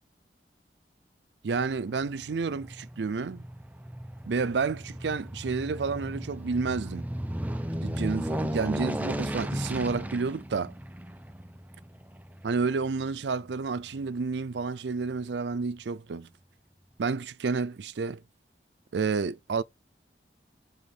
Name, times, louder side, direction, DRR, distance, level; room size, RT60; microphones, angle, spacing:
voice 1, 1.4-3.5 4.3-7.1 7.8-10.7 12.4-16.3 17.0-18.2 18.9-19.6, right 4 dB, 85° right, 0.5 m, -30 dB
Aircraft, 1.8-14.1 14.5-14.6, equal, 10° right, 0.5 m, -36 dB
7.0 x 3.6 x 5.7 m
head